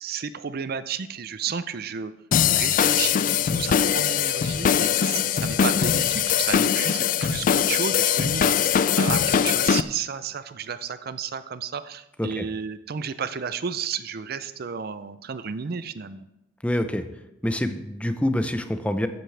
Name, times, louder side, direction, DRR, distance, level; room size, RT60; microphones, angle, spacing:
voice 1, 0.0-2.1 2.5-16.2, right 6 dB, 55° right, 13 dB, 0.5 m, -32 dB
sound 1, 2.3-9.8, left 8 dB, 45° left, 0.3 m, -21 dB
sound 2, 3.3-7.4, left 6 dB, 10° right, 3.9 m, -48 dB
voice 2, 16.6-17.0 17.4-19.1, left 1 dB, 5° left, 8 dB, 0.6 m, -26 dB
13.5 x 10.5 x 3.4 m, 0.89 s
head